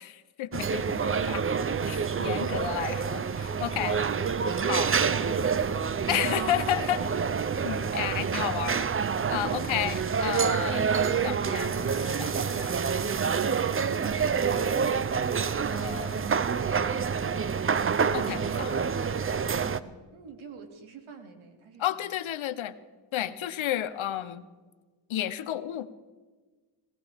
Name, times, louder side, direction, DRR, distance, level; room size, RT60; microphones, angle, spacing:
voice 1, 0.0-1.4 1.9-4.0 4.7-4.9 6.1-7.0 7.6-8.9 9.3-12.9 15.7-16.3 18.1-18.9 21.8-22.8 23.1-24.5 25.1-25.9, left 12 dB, 70° left, 14 dB, 1.0 m, -32 dB
sound 1, 0.5-19.8, right 6 dB, 25° right, 0.6 m, -27 dB
voice 2, 4.5-6.3 6.7-7.1 19.6-22.2, right 4 dB, 70° right, 5 dB, 2.6 m, -48 dB
20.5 x 19.0 x 3.6 m, 1.4 s
cardioid pair, 80°, 50 cm